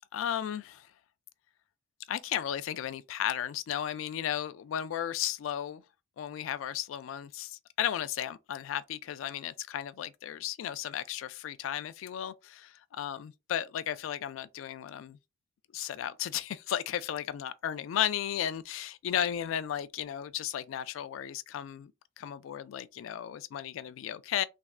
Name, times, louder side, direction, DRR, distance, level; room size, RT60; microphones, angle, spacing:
voice 1, 0.1-0.9 2.1-5.8 6.2-12.7 13.0-15.2 15.7-21.9 22.2-24.4, left 10 dB, 85° left, 0.3 m, -34 dB
3.5 x 2.1 x 2.3 m
head